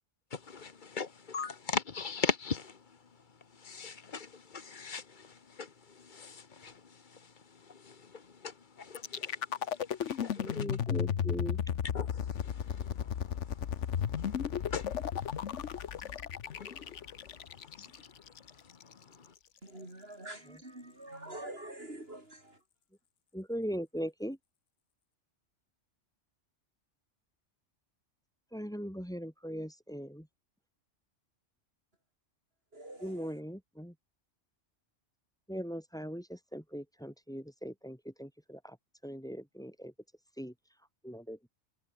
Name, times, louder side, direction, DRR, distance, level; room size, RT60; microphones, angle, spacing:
voice 1, 0.5-2.6 3.7-4.3 4.7-5.0 5.6-5.7 6.2-6.3 6.6-6.7 9.1-9.3 11.9-12.1 14.7-14.8 16.6-16.7, left 5 dB, 45° left, 1.3 m, -35 dB
sound 1, 8.9-18.9, left 8 dB, 80° left, 1.3 m, -34 dB
voice 2, 10.4-11.6 20.5-20.6 23.3-24.4 28.5-30.3 33.0-33.9 35.5-38.8 39.0-39.9 40.4-40.5 41.0-41.5, equal, 5° left, 2.4 m, -40 dB
voice 3, 19.6-22.4 32.7-33.3, right 1 dB, 55° right, 6.4 m, -45 dB
omnidirectional pair, 1.2 m